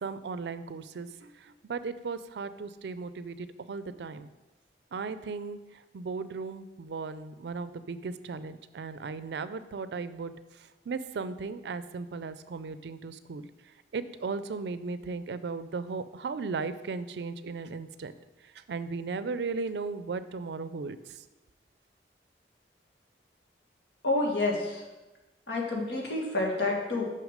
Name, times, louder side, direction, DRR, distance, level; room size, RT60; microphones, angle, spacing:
voice 1, 0.0-4.3 4.9-5.6 5.9-13.5 13.9-18.1 18.5-21.2, right 4 dB, 75° right, 13 dB, 0.4 m, -36 dB
voice 2, 24.0-24.8 25.5-27.0, left 2 dB, 85° left, -1 dB, 1.8 m, -28 dB
6.2 x 5.7 x 5.1 m, 1.1 s
head